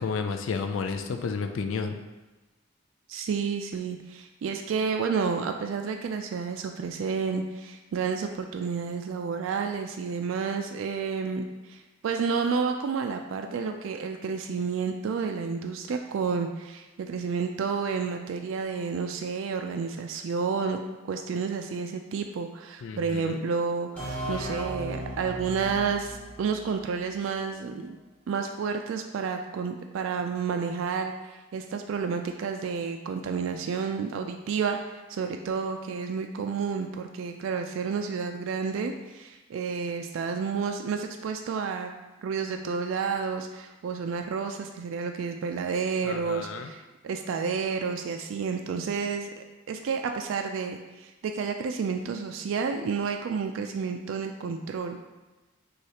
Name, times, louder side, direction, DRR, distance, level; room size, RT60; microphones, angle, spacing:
voice 1, 0.0-2.0 22.8-23.5 46.0-46.7, left 5 dB, 70° left, 7 dB, 0.4 m, -31 dB
voice 2, 3.1-20.8 21.1-28.0 28.3-41.9 42.2-49.3 49.7-55.0, right 5 dB, 70° right, 5 dB, 0.3 m, -30 dB
sound 1, 24.0-27.5, equal, 5° left, 1.5 m, -37 dB
6.2 x 2.4 x 2.9 m, 1.1 s
head